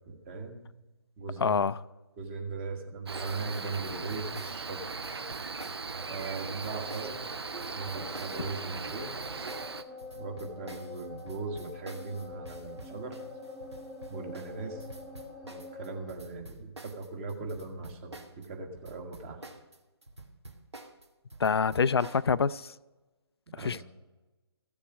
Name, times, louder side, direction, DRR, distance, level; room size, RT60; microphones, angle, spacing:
voice 1, 0.0-0.7 1.2-1.6 2.2-4.8 6.1-7.2 7.7-9.1 10.1-13.2 14.1-14.9 15.4-19.4 23.6-23.8, right 3 dB, 25° right, 1.5 m, -39 dB
voice 2, 1.4-1.8 21.4-22.7 23.6-23.8, left 6 dB, 70° left, 0.4 m, -26 dB
Cricket, 3.1-9.8, right 4 dB, 70° right, 0.7 m, -39 dB
sound 1, 3.1-18.5 18.7-22.3, right 2 dB, 90° right, 1.4 m, -48 dB
sound 2, 5.9-16.1, left 2 dB, ahead, 0.8 m, -46 dB
15.0 x 7.1 x 5.9 m
figure-of-eight pair, 145°, 14 cm